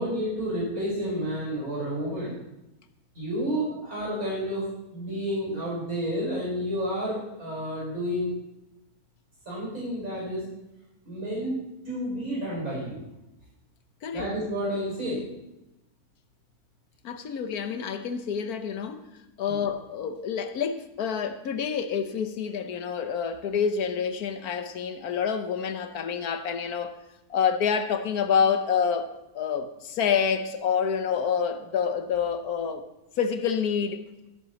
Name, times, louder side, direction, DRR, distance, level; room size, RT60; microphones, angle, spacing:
voice 1, 0.0-2.3 3.1-8.3 9.5-10.5 11.0-13.0 14.1-15.2 19.5-19.6, equal, 55° right, 5.7 m, -30 dB
voice 2, 17.0-19.0 19.4-26.9 27.3-29.1 29.3-32.8 33.2-34.1, left 7 dB, 70° left, 1.4 m, -27 dB
13.5 x 6.2 x 6.9 m
omnidirectional pair, 1.6 m